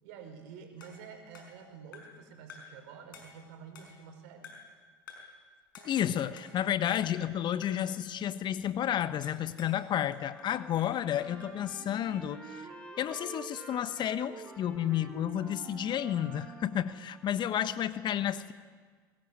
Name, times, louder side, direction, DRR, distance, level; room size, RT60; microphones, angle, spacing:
voice 1, 0.0-4.5, right 6 dB, 60° right, 5 dB, 5.1 m, -49 dB
sound 1, 0.8-2.2 2.5-2.8 3.1-4.1 4.4-4.8 5.1-5.4 5.7-6.7 7.0-7.4 7.6-7.9 9.2-9.8 10.1-11.6, left 5 dB, 75° left, 5.4 m, -52 dB
voice 2, 5.8-12.7 13.0-18.5, left 10 dB, 40° left, 13 dB, 1.2 m, -31 dB
Trumpet, 10.3-17.4, equal, 10° left, 4.7 m, -53 dB
sound 2, 11.1-16.8, right 6 dB, 30° right, 2.9 m, -49 dB
23.0 x 20.5 x 9.9 m, 1.5 s
figure-of-eight pair, 65°, 11 cm